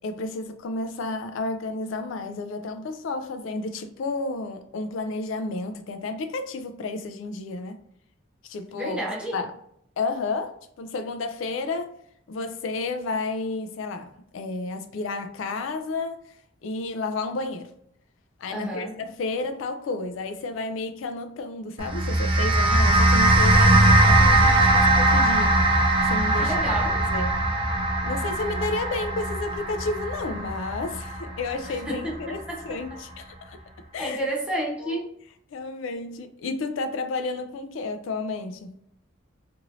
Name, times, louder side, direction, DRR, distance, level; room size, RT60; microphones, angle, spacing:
voice 1, 0.0-7.8 8.4-9.0 9.3-9.5 10.0-12.0 12.3-16.4 16.6-17.7 18.4-25.6 26.0-26.5 27.0-27.4 28.0-33.6 33.9-34.2 34.8-35.0 35.5-38.8, left 3 dB, 75° left, 0.3 m, -31 dB
voice 2, 8.8-9.3 18.5-19.0 26.3-27.0 31.9-32.6 34.0-35.1, right 1 dB, 5° right, 0.8 m, -30 dB
sound 1, 21.8-32.3, right 1 dB, 30° right, 0.4 m, -20 dB
3.0 x 2.6 x 2.6 m
head